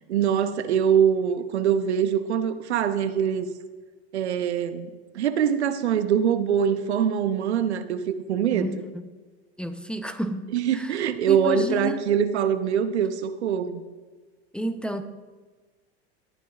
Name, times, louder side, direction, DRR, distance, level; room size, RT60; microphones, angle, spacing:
voice 1, 0.1-3.5 4.1-8.7 10.5-13.8, right 8 dB, 85° right, 10 dB, 0.9 m, -23 dB
voice 2, 8.5-9.1 9.6-12.0 14.5-15.0, equal, 5° left, 7 dB, 0.6 m, -31 dB
19.0 x 9.2 x 2.4 m, 1.4 s
hypercardioid pair, 100°, 32 cm